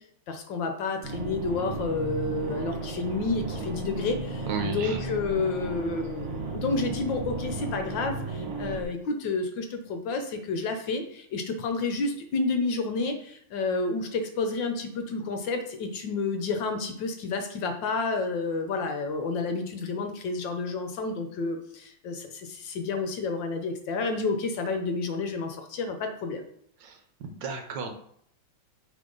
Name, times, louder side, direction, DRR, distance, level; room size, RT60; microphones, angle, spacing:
voice 1, 0.3-26.4, left 3 dB, 70° left, 5 dB, 1.3 m, -30 dB
sound 1, 1.0-8.8, right 2 dB, 50° right, 1.7 m, -34 dB
voice 2, 4.5-5.0 26.8-27.9, right 5 dB, 65° right, 5 dB, 1.3 m, -34 dB
9.1 x 3.5 x 3.8 m, 0.68 s
omnidirectional pair, 2.4 m